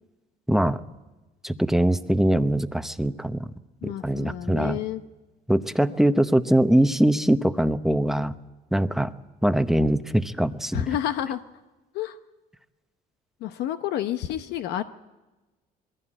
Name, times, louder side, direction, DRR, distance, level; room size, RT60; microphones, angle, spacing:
voice 1, 0.5-0.8 1.4-3.5 3.8-4.8 5.5-8.3 8.7-9.1 9.4-10.9, right 1 dB, ahead, 10 dB, 0.8 m, -22 dB
voice 2, 3.8-5.0 10.7-11.4 11.9-12.2 13.4-14.8, left 11 dB, 80° left, 9 dB, 0.8 m, -29 dB
21.5 x 15.5 x 8.9 m, 1.1 s
cardioid pair, 110°, 17 cm